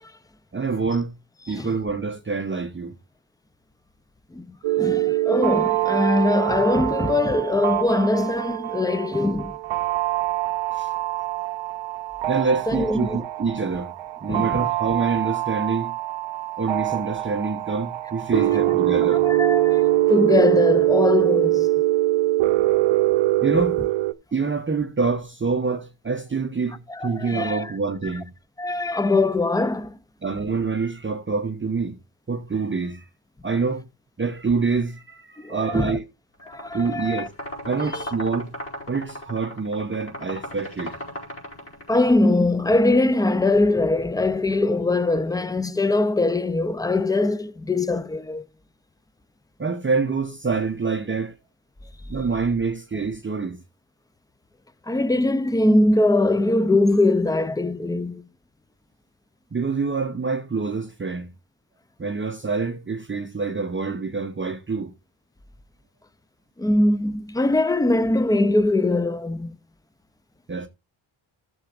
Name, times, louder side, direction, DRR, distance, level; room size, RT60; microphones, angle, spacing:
voice 1, 0.5-1.2 1.5-2.9 10.7-10.9 12.3-13.9 14.2-16.0 16.6-19.2 23.4-23.8 24.3-28.3 30.2-32.0 32.3-33.0 33.4-33.9 34.2-36.0 36.7-37.3 37.7-38.5 38.9-41.0 49.6-51.3 52.1-53.6 59.5-61.3 62.0-64.9 70.5-70.7, right 4 dB, 25° right, 0.8 m, -26 dB
voice 2, 4.3-9.6 12.7-13.2 14.3-14.6 18.5-18.6 19.2-21.7 26.9-27.7 28.6-30.0 35.4-36.0 36.5-37.3 37.8-38.0 41.9-48.5 54.9-58.2 66.6-69.6, left 2 dB, 10° left, 0.4 m, -22 dB
sound 1, 4.6-24.1, right 16 dB, 65° right, 0.7 m, -23 dB
sound 2, 36.4-42.1, equal, 25° left, 5.1 m, -36 dB
15.0 x 7.1 x 2.5 m
cardioid pair, 90°, 50 cm